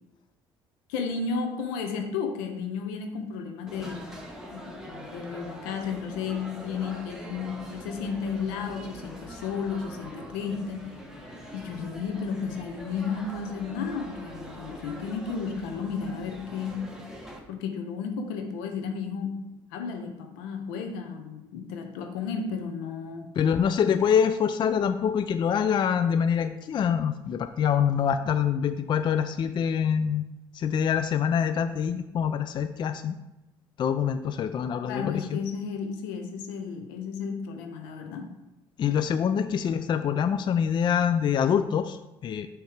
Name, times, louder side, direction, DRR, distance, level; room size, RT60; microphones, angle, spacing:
voice 1, 0.9-4.1 4.5-10.9 11.5-16.9 17.5-19.4 19.7-23.3 23.8-23.9 34.9-38.3, left 5 dB, 85° left, 5 dB, 0.8 m, -33 dB
sound 1, 3.7-17.4, equal, 5° right, 1.3 m, -43 dB
voice 2, 23.4-30.2 30.5-33.1 33.8-35.4 38.8-42.5, left 8 dB, 45° left, 9 dB, 0.4 m, -25 dB
6.3 x 3.2 x 5.0 m, 0.95 s
supercardioid pair, 70°, 11 cm